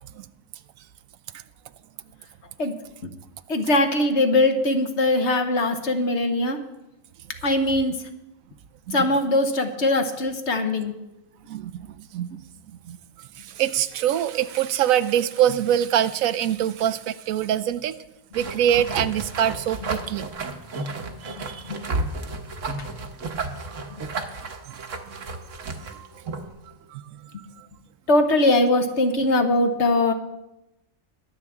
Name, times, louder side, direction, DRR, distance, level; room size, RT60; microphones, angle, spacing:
voice 1, 3.5-6.6 7.4-7.9 8.9-10.9 21.7-21.8 28.1-30.1, left 2 dB, 60° left, 6 dB, 1.4 m, -21 dB
voice 2, 11.5-11.8 12.1-12.4 12.9-13.0 13.6-17.9 18.3-20.3 21.2-21.6 26.9-27.0, right 10 dB, 85° right, 14 dB, 1.0 m, -23 dB
sound 1, 18.3-26.5, right 3 dB, 65° right, 1.4 m, -32 dB
22.0 x 8.2 x 3.6 m, 0.92 s
omnidirectional pair, 1.4 m